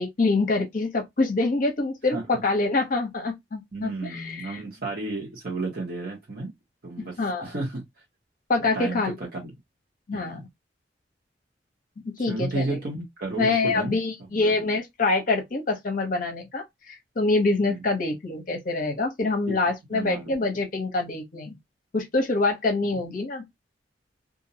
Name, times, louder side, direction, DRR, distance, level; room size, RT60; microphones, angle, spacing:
voice 1, 0.0-4.6 7.2-7.5 8.5-9.2 10.1-10.4 12.2-12.8 13.4-21.5 21.9-23.4, left 3 dB, 50° left, 0.7 m, -25 dB
voice 2, 3.7-6.5 6.8-7.8 8.7-9.5 10.1-10.4 12.3-14.0 14.3-14.8 17.6-17.8 19.5-19.6 19.9-20.3, right 2 dB, 55° right, 0.9 m, -32 dB
2.5 x 2.0 x 2.7 m
head